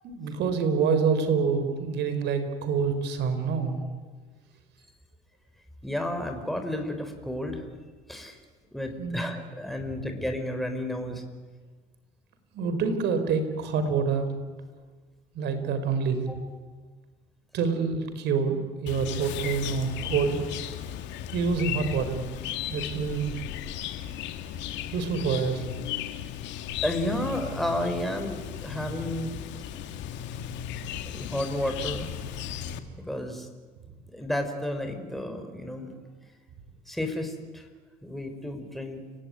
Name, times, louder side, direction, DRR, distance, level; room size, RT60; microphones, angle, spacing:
voice 1, 0.0-3.8 9.0-9.2 12.5-14.3 15.3-16.3 17.5-20.4 21.3-22.2 22.6-23.4 24.9-25.6, right 5 dB, 60° right, 9 dB, 4.4 m, -27 dB
voice 2, 5.8-7.6 8.1-8.4 8.7-11.2 16.3-16.4 26.8-29.3 31.0-32.1 33.0-33.5 34.1-35.9 36.9-37.7 38.0-39.0, left 1 dB, ahead, 5 dB, 4.3 m, -32 dB
Chirp tweet, 18.9-32.8, left 10 dB, 70° left, 2.1 m, -36 dB
29.5 x 17.0 x 9.7 m, 1.4 s
hypercardioid pair, 70°, 19 cm